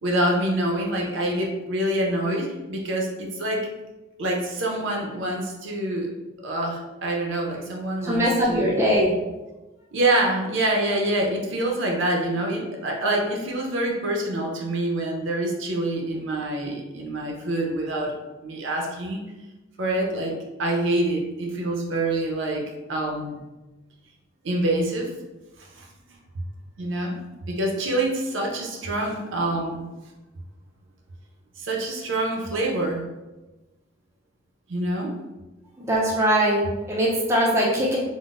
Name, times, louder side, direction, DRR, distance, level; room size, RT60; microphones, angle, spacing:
voice 1, 0.0-3.7 4.2-6.1 6.4-8.7 9.9-19.2 19.8-23.4 24.4-25.1 25.6-25.9 26.8-27.2 27.5-29.8 31.6-33.0 34.7-35.1, right 1 dB, 65° right, 0 dB, 0.5 m, -26 dB
voice 2, 8.0-9.1 35.8-38.0, equal, 15° right, -4 dB, 0.4 m, -21 dB
3.8 x 2.0 x 2.4 m, 1.1 s
head